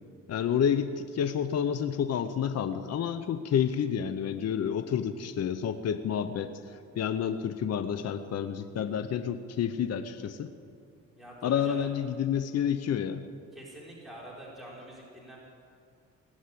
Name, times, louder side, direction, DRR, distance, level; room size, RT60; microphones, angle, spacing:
voice 1, 0.3-10.5 11.4-13.3, left 8 dB, 55° left, 10 dB, 0.8 m, -29 dB
voice 2, 11.1-11.9 13.5-15.4, right 1 dB, ahead, -6 dB, 4.5 m, -46 dB
19.0 x 7.3 x 9.8 m, 2.4 s
cardioid pair, 90°, 30 cm